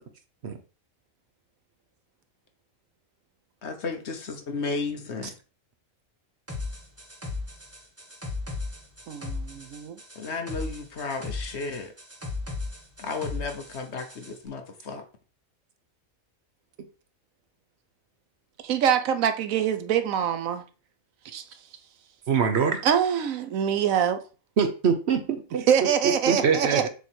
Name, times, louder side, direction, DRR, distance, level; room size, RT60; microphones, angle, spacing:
voice 1, 3.6-5.3 10.2-11.9 13.0-15.0, left 4 dB, 55° left, 1.2 m, -33 dB
sound 1, 6.5-14.3, left 3 dB, 10° right, 1.3 m, -36 dB
voice 2, 9.1-10.0 18.6-20.6 21.2-21.4 22.8-24.2 25.7-26.9, right 8 dB, 85° right, 1.1 m, -24 dB
voice 3, 22.3-22.8 24.6-25.6 26.0-26.9, right 6 dB, 55° right, 1.1 m, -24 dB
7.0 x 3.1 x 4.4 m
omnidirectional pair, 1.4 m